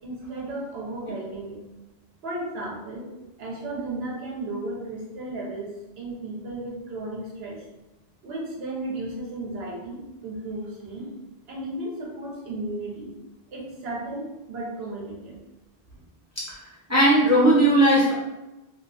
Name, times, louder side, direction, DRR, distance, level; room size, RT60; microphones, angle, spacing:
voice 1, 0.0-1.6 2.2-3.1 3.4-5.7 6.0-7.6 8.2-11.1 11.5-13.1 13.5-15.3, right 2 dB, 75° right, -3 dB, 1.0 m, -34 dB
voice 2, 16.9-18.1, right 1 dB, 20° right, -8 dB, 0.5 m, -18 dB
2.4 x 2.4 x 2.3 m, 1.0 s
omnidirectional pair, 1.0 m